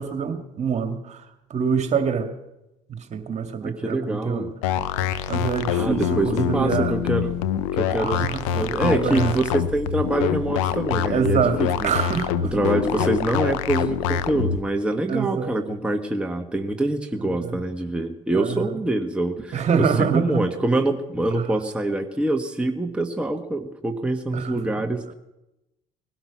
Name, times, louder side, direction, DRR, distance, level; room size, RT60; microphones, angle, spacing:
voice 1, 0.0-2.3 2.9-4.5 5.3-7.0 8.0-9.4 11.1-12.5 12.9-13.0 15.1-15.6 17.2-17.7 18.3-18.8 19.5-20.5 24.3-24.6, right 6 dB, 45° right, 7 dB, 2.2 m, -26 dB
voice 2, 3.6-4.5 5.8-7.3 7.8-8.2 8.6-11.9 12.4-19.6 20.0-25.1, right 2 dB, 5° right, 3 dB, 1.4 m, -25 dB
sound 1, 4.6-14.6, left 9 dB, 85° left, 0.8 m, -25 dB
20.0 x 12.0 x 6.1 m, 0.93 s
supercardioid pair, 75°, 16 cm